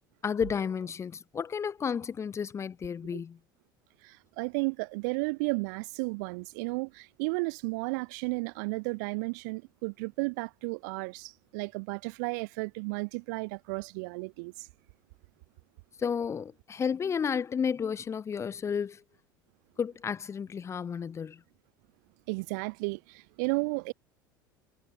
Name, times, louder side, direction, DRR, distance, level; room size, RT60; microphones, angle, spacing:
voice 1, 0.2-3.4 16.0-19.0 19.8-21.4, left 7 dB, 25° left, 1.0 m, -32 dB
voice 2, 4.0-14.7 22.3-23.9, right 30 dB, 55° right, 0.9 m, -33 dB
figure-of-eight pair, 70°, 11 cm